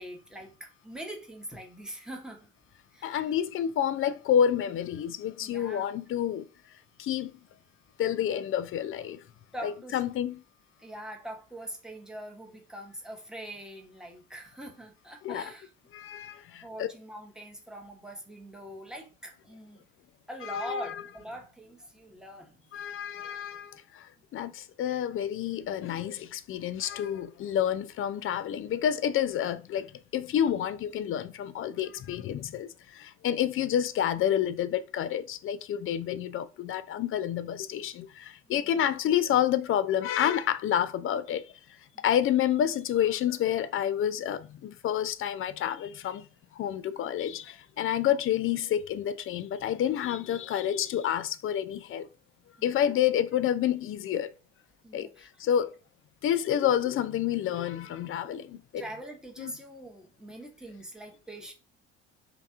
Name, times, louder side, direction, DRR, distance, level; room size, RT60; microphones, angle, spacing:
voice 1, 0.0-2.5 2.9-3.3 5.4-5.9 9.5-10.0 10.8-15.7 16.6-19.9 20.3-22.6 38.4-38.9 41.9-42.0 47.8-47.9 52.6-53.0 54.8-55.3 58.5-61.5, equal, ahead, 1.1 m, -43 dB
voice 2, 3.0-6.4 7.0-7.3 8.0-9.2 9.6-10.4 15.2-15.5 15.9-16.9 20.4-20.9 22.7-23.8 24.3-29.9 30.1-41.5 42.0-46.3 46.6-52.1 52.6-54.3 54.9-55.1 55.4-55.7 56.2-58.8 59.4-59.5, left 10 dB, 35° left, 0.5 m, -29 dB
3.3 x 2.9 x 3.5 m
hypercardioid pair, 60°, 36 cm